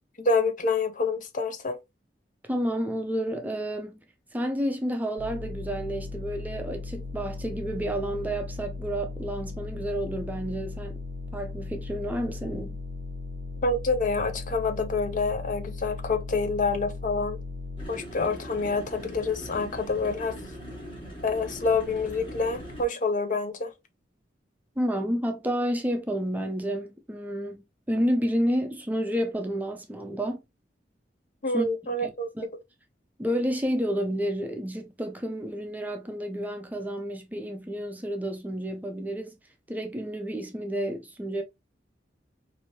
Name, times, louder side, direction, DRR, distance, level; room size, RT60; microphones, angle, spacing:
voice 1, 0.2-1.8 13.6-17.4 17.9-20.4 21.2-23.7 31.4-32.3, left 3 dB, 45° left, 0.5 m, -27 dB
voice 2, 2.5-4.0 4.3-11.0 11.3-12.8 24.8-27.6 27.9-30.4 31.5-31.7 32.0-32.5 33.2-39.4 39.7-41.4, equal, 10° right, 0.4 m, -30 dB
sound 1, 5.2-17.9, left 3 dB, 70° right, 0.6 m, -37 dB
sound 2, 17.8-22.8, equal, 30° left, 1.2 m, -40 dB
3.0 x 2.6 x 2.8 m
head